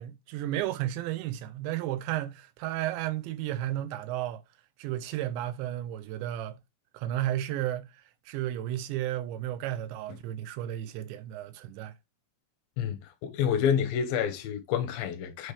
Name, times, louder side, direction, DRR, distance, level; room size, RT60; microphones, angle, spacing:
voice 1, 0.0-4.4 4.8-6.6 6.9-11.9, right 13 dB, 80° right, 3.0 m, -33 dB
voice 2, 12.8-15.5, left 8 dB, 70° left, 2.4 m, -28 dB
8.0 x 5.2 x 3.3 m
omnidirectional pair, 5.3 m